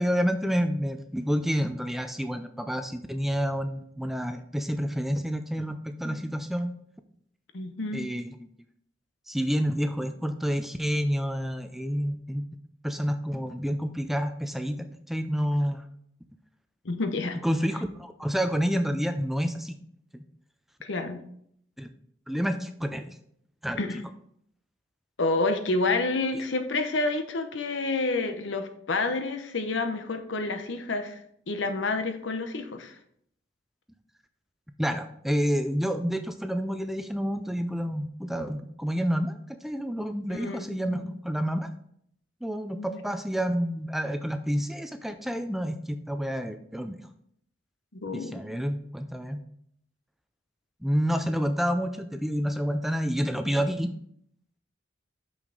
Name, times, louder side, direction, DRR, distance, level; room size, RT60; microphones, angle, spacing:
voice 1, 0.0-6.7 7.9-8.3 9.3-12.4 12.8-15.9 17.4-19.8 20.1-20.2 21.8-21.9 22.3-23.2 23.6-24.0 34.8-41.7 42.4-47.0 48.1-49.4 50.8-53.9, equal, ahead, 8 dB, 0.4 m, -29 dB
voice 2, 7.5-8.0 16.8-17.4 20.8-21.2 23.8-24.0 25.2-31.2 31.5-33.0 40.3-41.1 42.8-43.0 48.0-48.4, left 3 dB, 85° left, 7 dB, 0.8 m, -29 dB
6.3 x 6.0 x 3.8 m, 0.68 s
head